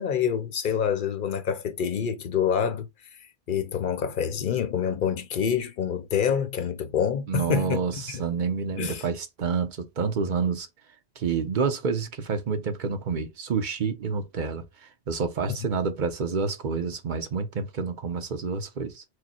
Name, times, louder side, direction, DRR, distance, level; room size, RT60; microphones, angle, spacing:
voice 1, 0.0-2.9 3.5-7.8 8.1-8.2 8.8-9.0, left 8 dB, 55° left, 0.7 m, -26 dB
voice 2, 7.3-10.7 11.2-19.0, right 5 dB, 50° right, 0.8 m, -28 dB
4.8 x 2.1 x 4.2 m
omnidirectional pair, 1.2 m